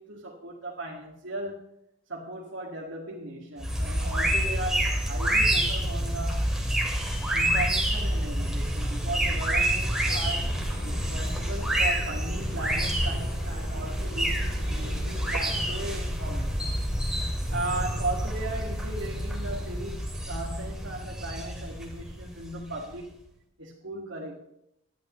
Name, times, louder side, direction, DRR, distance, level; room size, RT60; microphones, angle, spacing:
voice 1, 0.0-1.6 2.1-6.5 7.3-16.9 17.5-23.2 23.6-24.3, right 2 dB, 75° right, -3 dB, 2.1 m, -37 dB
sound 1, 3.6-23.0, right 1 dB, 5° right, 2.3 m, -28 dB
sound 2, 10.0-15.9, equal, 80° left, 3.2 m, -45 dB
19.5 x 12.5 x 3.2 m, 0.77 s
head